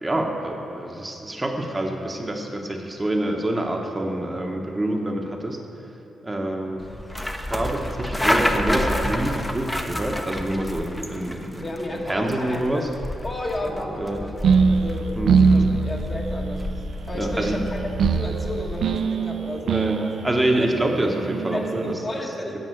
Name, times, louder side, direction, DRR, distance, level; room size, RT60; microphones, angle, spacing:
voice 1, 0.0-5.6 6.2-6.9 7.3-11.7 12.1-12.9 14.0-14.2 15.2-15.7 17.2-17.6 19.6-21.9, right 1 dB, 20° right, 1 dB, 1.0 m, -26 dB
sound 1, 6.8-19.1, left 1 dB, 10° left, 0.8 m, -30 dB
voice 2, 11.6-12.8 13.2-20.2 20.6-20.7 21.5-22.6, left 1 dB, 35° left, 0 dB, 1.4 m, -33 dB
sound 2, 14.4-21.9, right 5 dB, 70° right, 0.4 m, -23 dB
9.1 x 5.4 x 7.7 m, 2.9 s
supercardioid pair, 60°, 0 cm